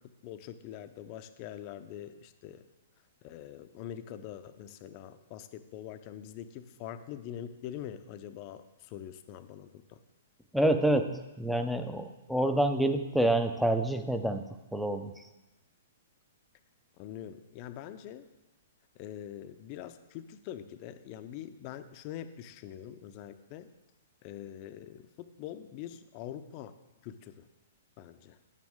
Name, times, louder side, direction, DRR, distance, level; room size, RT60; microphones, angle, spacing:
voice 1, 0.2-2.6 3.2-10.0 17.0-18.3 19.0-23.7 24.2-26.8 27.0-27.4 28.0-28.4, left 10 dB, 40° left, 11 dB, 0.6 m, -44 dB
voice 2, 10.5-14.4 14.7-15.2, right 1 dB, ahead, 7 dB, 0.6 m, -27 dB
9.0 x 8.8 x 3.6 m, 1.0 s
hypercardioid pair, 120°, 0 cm